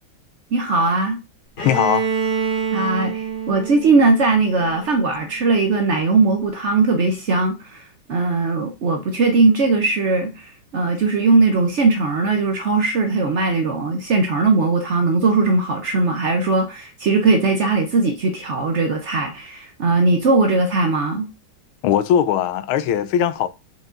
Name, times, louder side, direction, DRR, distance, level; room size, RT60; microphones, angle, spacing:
voice 1, 0.5-1.2 2.7-21.3, right 3 dB, 75° right, 0.6 m, -19 dB
voice 2, 1.6-2.1 21.8-23.5, left 10 dB, 80° left, 1.4 m, -19 dB
Bowed string instrument, 1.6-5.4, right 6 dB, 50° left, 2.6 m, -27 dB
5.4 x 5.2 x 3.7 m
omnidirectional pair, 2.3 m